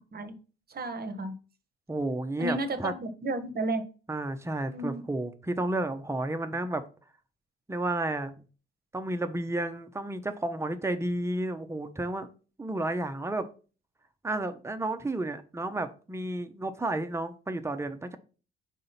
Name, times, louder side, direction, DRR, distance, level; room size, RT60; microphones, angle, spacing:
voice 1, 0.7-1.3 2.4-3.8 4.7-5.0, right 2 dB, 35° right, 9 dB, 1.0 m, -32 dB
voice 2, 1.9-2.9 4.1-6.8 7.7-8.3 8.9-12.3 12.6-13.5 14.2-18.2, right 2 dB, 10° right, 8 dB, 0.7 m, -32 dB
5.0 x 3.8 x 5.6 m, 0.37 s
figure-of-eight pair, 45°, 29 cm